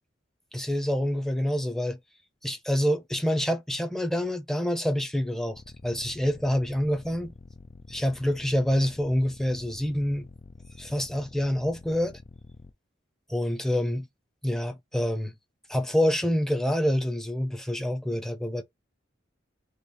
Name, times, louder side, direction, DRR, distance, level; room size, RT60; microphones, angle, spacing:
voice 1, 0.5-2.0 2.4-7.3 7.9-10.3 10.8-12.2 13.3-14.1 14.4-15.3 15.7-18.6, equal, ahead, 0.8 m, -27 dB
sound 1, 5.5-12.7, left 3 dB, 40° left, 0.5 m, -48 dB
3.2 x 3.0 x 4.4 m
head